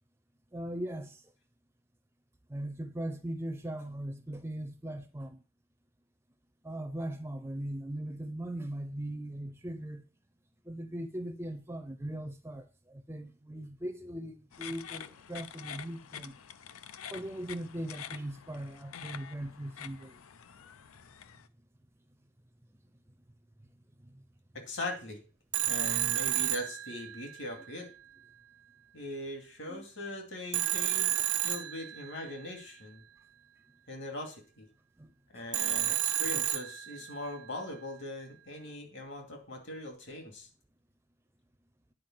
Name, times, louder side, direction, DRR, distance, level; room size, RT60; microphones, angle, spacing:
voice 1, 0.5-1.2 2.5-5.4 6.6-10.0 10.6-16.4 17.1-20.2 24.0-24.2 29.7-29.8 35.0-35.5, right 1 dB, 10° right, 0.6 m, -39 dB
sound 1, 14.5-21.5, left 8 dB, 85° left, 0.6 m, -47 dB
voice 2, 24.5-25.2 25.7-27.9 28.9-31.2 31.4-33.0 33.9-34.7 35.3-40.5, left 1 dB, 55° left, 2.6 m, -41 dB
Telephone, 25.5-27.5 30.5-32.3 35.5-37.2, right 13 dB, 85° right, 0.8 m, -31 dB
9.4 x 4.8 x 7.4 m
head